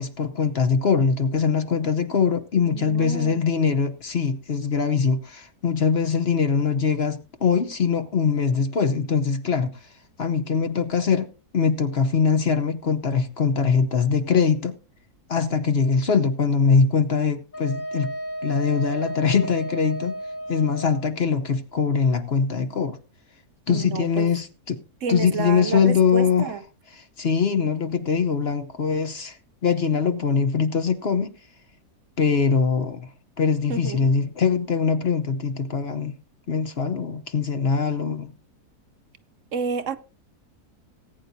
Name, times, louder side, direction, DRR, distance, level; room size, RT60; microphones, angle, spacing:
voice 1, 0.0-9.8 10.2-11.3 11.5-14.7 15.3-18.1 18.4-20.1 20.5-23.0 23.7-24.8 25.1-26.5 27.2-29.4 29.6-31.3 32.2-33.1 33.4-36.1 36.5-38.3, left 6 dB, 45° left, 1.0 m, -22 dB
voice 2, 2.5-3.4 23.7-24.3 25.0-26.6 33.7-34.1 39.5-40.0, right 5 dB, 60° right, 1.0 m, -30 dB
Wind instrument woodwind instrument, 17.5-21.1, right 1 dB, 30° left, 1.5 m, -33 dB
19.0 x 9.3 x 2.7 m
omnidirectional pair, 1.7 m